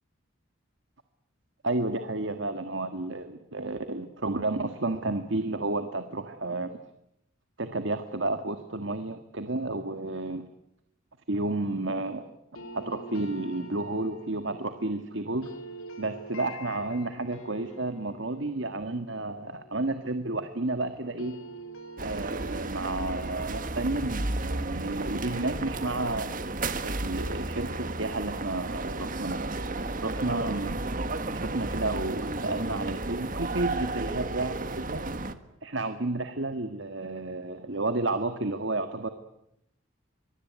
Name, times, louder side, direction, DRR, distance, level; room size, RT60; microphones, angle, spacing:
voice 1, 1.6-6.8 7.6-10.4 11.3-12.3 12.7-15.5 16.0-21.3 22.0-26.3 26.8-29.5 30.0-30.8 31.3-35.0 35.6-39.1, right 2 dB, 60° right, 9 dB, 1.7 m, -31 dB
sound 1, 12.5-20.6 20.9-25.9, right 2 dB, 85° left, 3.8 m, -47 dB
sound 2, 22.0-35.3, right 2 dB, 40° right, 1.7 m, -33 dB
25.0 x 23.5 x 9.4 m, 0.80 s
head